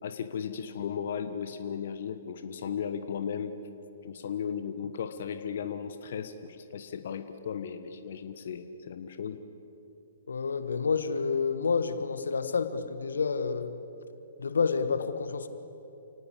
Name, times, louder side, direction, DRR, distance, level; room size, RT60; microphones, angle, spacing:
voice 1, 0.0-3.5 4.0-9.4, left 7 dB, 60° left, 9 dB, 1.3 m, -36 dB
voice 2, 10.3-13.7 14.4-15.5, left 5 dB, 75° left, 10 dB, 1.4 m, -29 dB
29.5 x 18.5 x 8.7 m, 2.8 s
figure-of-eight pair, 120°, 0 cm